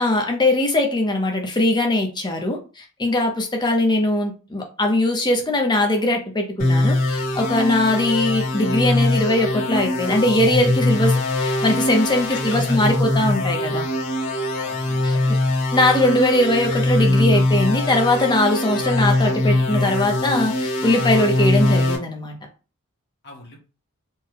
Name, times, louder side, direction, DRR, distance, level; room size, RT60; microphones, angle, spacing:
voice 1, 0.0-13.9 15.0-15.2 15.7-22.4, left 1 dB, 20° left, 2 dB, 0.8 m, -21 dB
sound 1, 6.6-22.0, left 1 dB, 65° left, 1.8 m, -22 dB
voice 2, 12.3-13.0 14.5-15.6 23.2-23.6, left 2 dB, 50° left, -2 dB, 1.4 m, -38 dB
4.4 x 2.3 x 3.4 m, 0.34 s
head